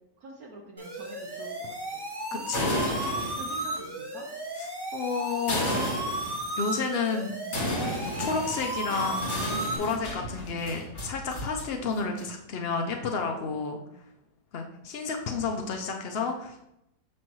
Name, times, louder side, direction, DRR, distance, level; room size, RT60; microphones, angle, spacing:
voice 1, 0.2-2.0 2.3-4.3, right 3 dB, 65° right, 2 dB, 1.2 m, -44 dB
sound 1, 0.8-9.8, right 1 dB, 35° right, 0.4 m, -34 dB
voice 2, 2.3-2.8 4.6-4.7 4.9-5.6 6.6-7.4 8.0-9.5 9.8-13.8 14.5-16.6, left 4 dB, 85° left, 3 dB, 0.5 m, -31 dB
sound 2, 2.4-3.7 5.5-6.4 7.5-11.7 12.0-12.5, left 1 dB, 45° left, 1.7 m, -32 dB
6.3 x 5.9 x 3.0 m, 0.84 s
omnidirectional pair, 1.8 m